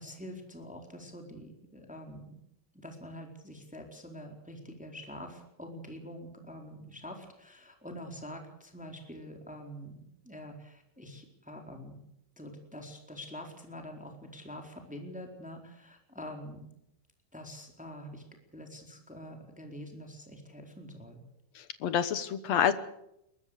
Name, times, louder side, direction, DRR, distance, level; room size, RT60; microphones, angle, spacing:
voice 1, 0.0-2.4 2.7-10.0 10.2-12.0 12.4-16.7 17.3-18.2 18.5-21.2, equal, ahead, 3 dB, 3.7 m, -45 dB
voice 2, 21.6-22.7, left 9 dB, 65° left, 12 dB, 1.7 m, -28 dB
22.5 x 21.0 x 6.6 m, 0.81 s
omnidirectional pair, 4.4 m